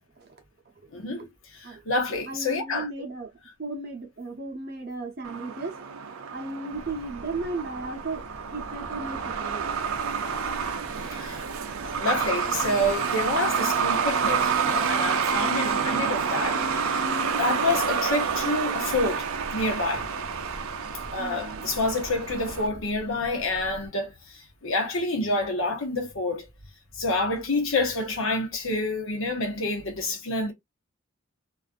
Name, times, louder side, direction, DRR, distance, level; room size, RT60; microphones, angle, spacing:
voice 1, 0.9-2.9 10.9-11.5 11.8-17.1 17.4-20.1 21.1-26.5 26.9-30.5, left 2 dB, 80° left, 1.0 m, -28 dB
voice 2, 2.2-3.3 3.6-5.8 6.3-8.3 8.5-9.6 21.2-21.7, right 3 dB, 50° right, 0.7 m, -35 dB
Truck, 5.2-22.7, right 6 dB, 90° right, 0.4 m, -28 dB
sound 1, 6.7-23.9, equal, 15° left, 1.0 m, -46 dB
2.5 x 2.4 x 2.5 m
head